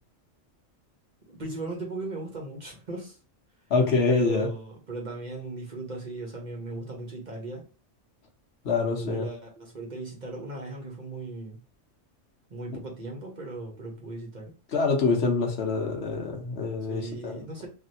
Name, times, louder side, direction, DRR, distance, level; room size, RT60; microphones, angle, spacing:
voice 1, 1.3-3.2 4.1-7.6 9.0-11.6 12.5-14.5 16.9-17.7, right 2 dB, 40° right, 1.1 m, -37 dB
voice 2, 3.7-4.5 8.6-9.3 14.7-17.4, left 4 dB, 60° left, 1.0 m, -25 dB
3.1 x 2.6 x 2.6 m
omnidirectional pair, 1.3 m